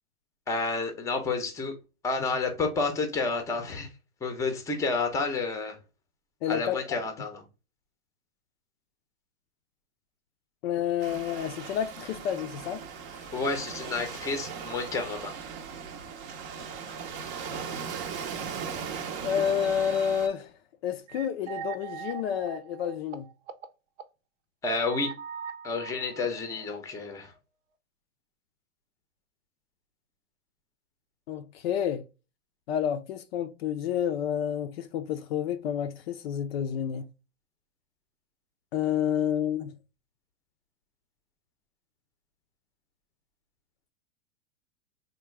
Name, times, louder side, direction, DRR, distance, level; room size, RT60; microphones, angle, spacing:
voice 1, 0.5-1.7 2.0-3.9 4.2-5.8 6.5-7.4 13.3-15.3 24.6-25.1 25.6-27.3, left 4 dB, 10° left, 0.6 m, -30 dB
voice 2, 6.4-7.0 10.6-12.9 19.2-20.5 20.8-23.3 31.3-32.0 32.7-37.1 38.7-39.7, left 9 dB, 50° left, 0.5 m, -29 dB
Waves surf, 11.0-20.3, right 6 dB, 35° right, 0.6 m, -38 dB
sound 1, 21.1-23.7 24.0-24.1 24.8-27.0, right 8 dB, 70° right, 0.7 m, -41 dB
3.6 x 2.2 x 3.1 m
hypercardioid pair, 125°, 39 cm